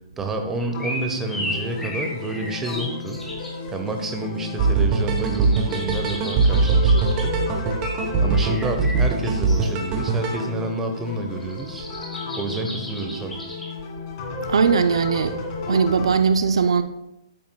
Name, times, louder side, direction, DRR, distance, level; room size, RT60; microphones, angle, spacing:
voice 1, 0.2-3.2 3.7-7.3 8.2-11.9 12.4-13.4, right 2 dB, 10° right, 0.9 m, -29 dB
sound 1, 0.6-3.6 4.7-7.3 7.7-9.7 11.4-13.7, left 1 dB, 5° left, 1.3 m, -35 dB
sound 2, 0.7-16.1, left 3 dB, 35° left, 2.0 m, -33 dB
sound 3, 4.6-10.4, right 4 dB, 25° right, 1.2 m, -21 dB
voice 2, 14.5-15.4 15.7-16.8, right 5 dB, 75° right, 0.5 m, -19 dB
9.3 x 8.6 x 2.3 m
hypercardioid pair, 145°, 3 cm